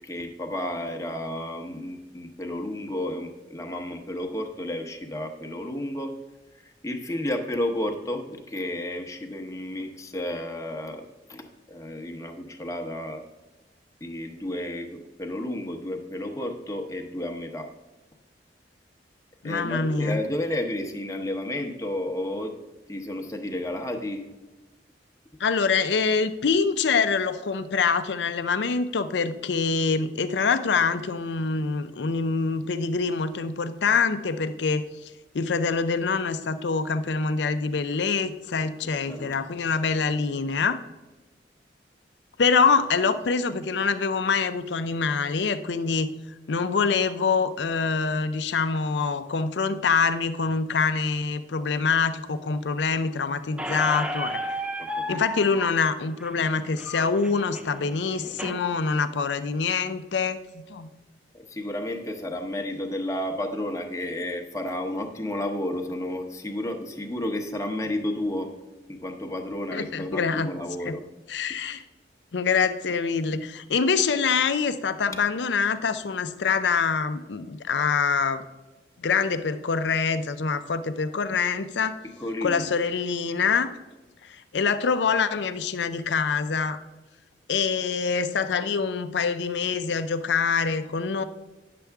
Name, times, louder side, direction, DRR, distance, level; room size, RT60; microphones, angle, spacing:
voice 1, 0.0-6.1 6.8-13.2 14.0-17.7 19.4-22.5 22.9-24.2 39.1-39.4 54.8-55.2 61.3-68.5 68.9-71.0 82.2-82.7, left 1 dB, 15° left, 4 dB, 0.8 m, -32 dB
voice 2, 19.4-20.2 25.4-34.9 35.3-40.8 42.4-46.1 46.5-54.4 55.1-60.9 69.7-70.5 70.8-71.0 71.3-71.8 72.3-78.4 79.0-82.0 82.4-83.8 84.3-86.8 87.5-91.2, left 5 dB, 80° left, 11 dB, 0.5 m, -25 dB
Squeak, 53.6-58.6, equal, 5° right, 0.4 m, -34 dB
10.0 x 6.8 x 3.5 m, 1.1 s
head